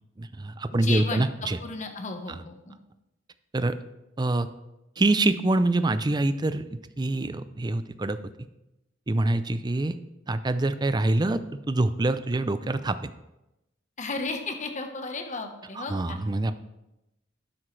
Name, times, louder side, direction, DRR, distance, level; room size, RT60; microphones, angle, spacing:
voice 1, 0.2-1.6 3.5-3.8 4.2-4.5 5.0-8.2 9.1-9.9 10.3-11.4 11.7-13.1 15.8-16.5, right 2 dB, 20° right, 12 dB, 0.5 m, -25 dB
voice 2, 0.8-1.2 1.6-2.8 14.0-16.2, left 3 dB, 40° left, 5 dB, 1.1 m, -34 dB
12.0 x 9.9 x 3.3 m, 0.93 s
head